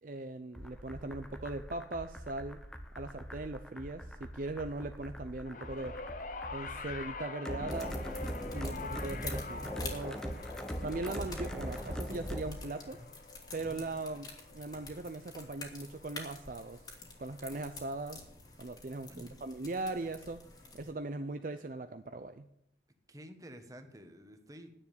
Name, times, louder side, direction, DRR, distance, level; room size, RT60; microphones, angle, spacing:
voice 1, 0.0-2.6 3.0-6.0 6.5-8.0 8.5-10.2 10.8-13.0 13.5-16.8 17.2-18.2 18.6-20.4 20.7-22.5, right 2 dB, 45° right, 8 dB, 0.5 m, -39 dB
sound 1, 0.5-12.5, equal, 5° left, 0.8 m, -41 dB
sound 2, 5.4-15.9 16.9-17.0, left 3 dB, 45° left, 0.8 m, -45 dB
sound 3, 7.7-20.9, left 3 dB, 20° left, 1.8 m, -49 dB
voice 2, 19.1-19.4 23.1-24.7, equal, 20° right, 7 dB, 1.2 m, -50 dB
9.9 x 7.2 x 9.2 m, 0.77 s
head